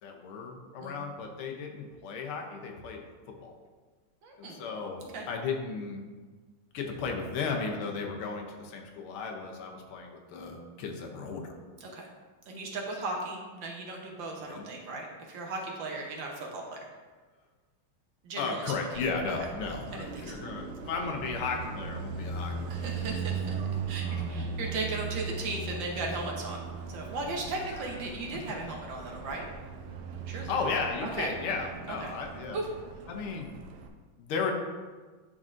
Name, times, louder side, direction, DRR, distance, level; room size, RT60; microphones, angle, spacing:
voice 1, 0.0-3.5 4.4-6.0 6.7-11.5 14.5-14.6 18.4-23.3 24.0-24.4 27.3-27.9 30.5-32.6 33.1-33.5 34.2-34.5, left 4 dB, 80° left, 2 dB, 1.6 m, -35 dB
voice 2, 4.2-4.6 5.1-5.3 11.8-12.1 12.5-16.8 18.2-18.6 19.9-20.3 22.7-23.5 23.9-26.6 26.9-29.4 30.3-30.5 31.0-31.3 32.0-32.1 32.5-32.7, right 2 dB, 65° right, 0 dB, 1.4 m, -36 dB
Car passing by, 18.9-33.9, right 5 dB, 90° right, 1.6 m, -38 dB
10.5 x 3.7 x 2.5 m, 1.4 s
omnidirectional pair, 2.4 m